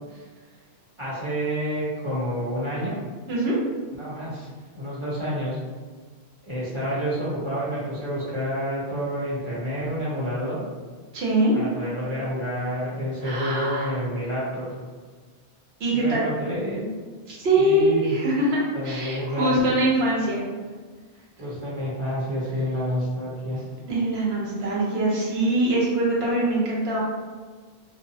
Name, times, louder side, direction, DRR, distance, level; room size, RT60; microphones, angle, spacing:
voice 1, 1.0-3.0 4.0-4.5 4.7-5.6 6.4-10.6 11.5-14.7 15.9-16.9 17.5-18.1 18.7-19.6 21.4-23.6, equal, 30° right, -9 dB, 0.9 m, -29 dB
voice 2, 11.1-11.6 13.2-14.0 15.8-16.2 17.3-20.4 23.9-27.0, right 1 dB, 75° right, -5 dB, 1.0 m, -23 dB
2.5 x 2.1 x 2.7 m, 1.5 s
omnidirectional pair, 1.1 m